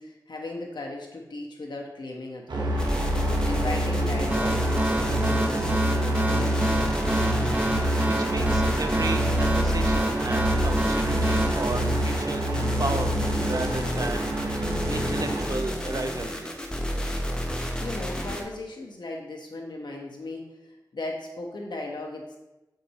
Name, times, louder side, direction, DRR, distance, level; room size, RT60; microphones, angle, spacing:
voice 1, 0.0-3.0 3.4-6.7 17.8-22.4, left 2 dB, 85° left, 0 dB, 1.3 m, -37 dB
sound 1, 2.5-15.5, right 1 dB, 80° right, 1.1 m, -27 dB
sound 2, 2.8-18.4, equal, 10° left, 1.1 m, -31 dB
sound 3, 4.3-12.6, right 1 dB, 20° right, 0.8 m, -29 dB
voice 2, 8.0-16.5, right 2 dB, 55° right, 6 dB, 0.7 m, -34 dB
6.8 x 6.6 x 3.1 m, 1.0 s
wide cardioid pair, 60°, 7 cm